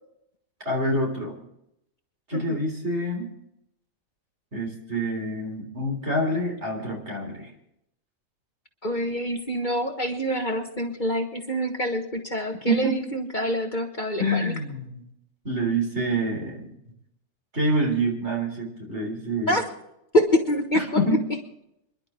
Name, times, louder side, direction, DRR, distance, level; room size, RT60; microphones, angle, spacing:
voice 1, 0.7-1.4 2.3-3.3 4.5-7.5 12.6-13.0 14.2-15.0 15.4-16.7 17.5-19.6 20.7-21.2, right 1 dB, 55° right, 1 dB, 3.9 m, -26 dB
voice 2, 8.8-14.5 19.5-19.6 20.1-21.0, equal, 35° left, 4 dB, 1.5 m, -26 dB
27.0 x 11.5 x 3.7 m, 0.80 s
omnidirectional pair, 1.4 m